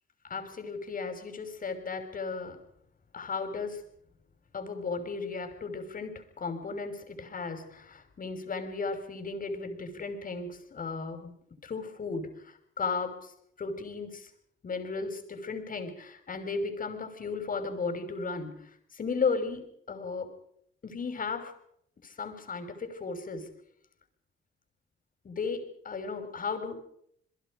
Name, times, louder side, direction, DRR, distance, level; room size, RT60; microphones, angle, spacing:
voice 1, 0.2-2.6 3.1-3.8 4.5-11.3 11.6-13.3 13.6-14.3 14.6-20.3 20.8-21.5 22.0-23.5 25.2-26.8, left 4 dB, 45° left, 7 dB, 5.9 m, -35 dB
28.5 x 22.0 x 5.2 m, 0.68 s
cardioid pair, 90°, 20 cm